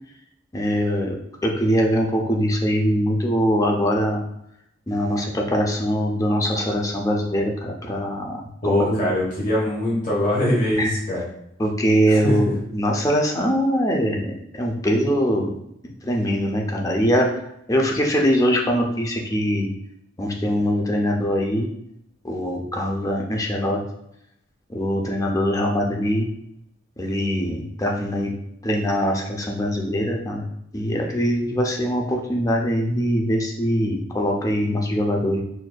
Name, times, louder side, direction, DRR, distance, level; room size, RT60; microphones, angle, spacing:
voice 1, 0.5-1.1 1.4-4.2 4.9-9.2 10.7-11.0 11.6-15.5 16.0-17.3 17.7-19.7 20.2-21.7 22.2-23.8 24.7-26.3 27.0-28.3 28.6-30.4 30.7-35.4, equal, 15° left, 0 dB, 0.5 m, -22 dB
voice 2, 8.6-11.2 12.1-12.4, left 1 dB, 40° left, -7 dB, 1.1 m, -22 dB
6.0 x 2.5 x 2.2 m, 0.79 s
head